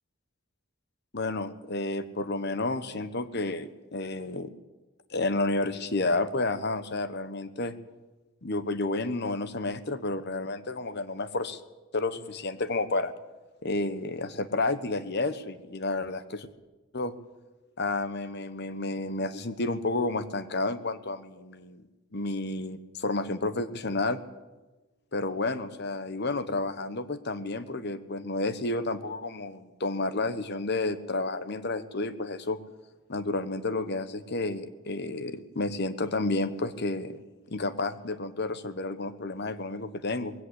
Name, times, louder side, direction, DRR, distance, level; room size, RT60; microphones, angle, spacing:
voice 1, 1.1-4.5 5.1-7.8 8.4-11.6 11.9-13.1 13.6-16.5 16.9-17.2 17.8-21.9 22.1-24.2 25.1-32.6 33.1-37.2 37.5-40.3, left 2 dB, 50° left, 13 dB, 1.2 m, -31 dB
20.5 x 16.5 x 8.2 m, 1.2 s
head